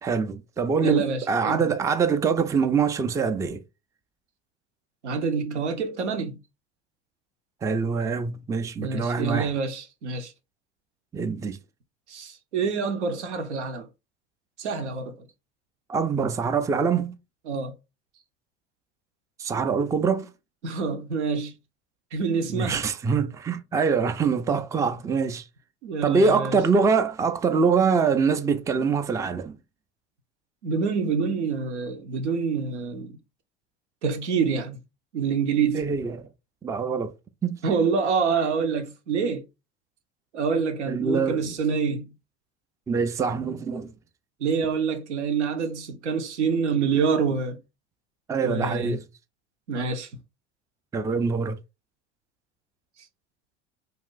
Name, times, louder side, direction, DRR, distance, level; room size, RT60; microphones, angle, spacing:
voice 1, 0.0-3.6 7.6-9.5 11.1-11.6 15.9-17.1 19.4-20.3 22.5-25.4 26.0-29.6 35.7-36.3 36.6-37.1 37.4-37.6 40.9-41.5 42.9-43.9 48.3-49.1 50.9-51.6, right 5 dB, 10° right, 0.3 m, -24 dB
voice 2, 0.8-1.7 5.0-6.4 8.8-10.3 12.1-13.9 14.6-15.3 17.5-17.7 20.6-21.5 22.1-22.8 25.8-26.6 30.6-33.2 34.0-34.8 35.1-35.8 37.6-39.4 40.3-42.1 44.4-47.6 48.4-49.0 49.7-50.1, right 5 dB, 85° right, 0.7 m, -26 dB
2.6 x 2.4 x 3.7 m
hypercardioid pair, 75°, 34 cm